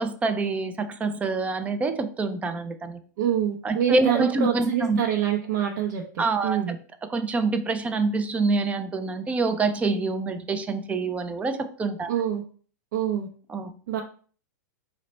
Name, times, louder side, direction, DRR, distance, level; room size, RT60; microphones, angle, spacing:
voice 1, 0.0-3.0 3.6-5.0 6.2-6.6 7.1-12.1 13.5-13.7, right 3 dB, 15° right, 9 dB, 0.3 m, -26 dB
voice 2, 3.2-6.8 12.1-12.4 12.9-13.3 13.9-14.0, right 10 dB, 65° right, 1 dB, 0.6 m, -26 dB
3.9 x 2.1 x 4.1 m, 0.43 s
hypercardioid pair, 130°, 10 cm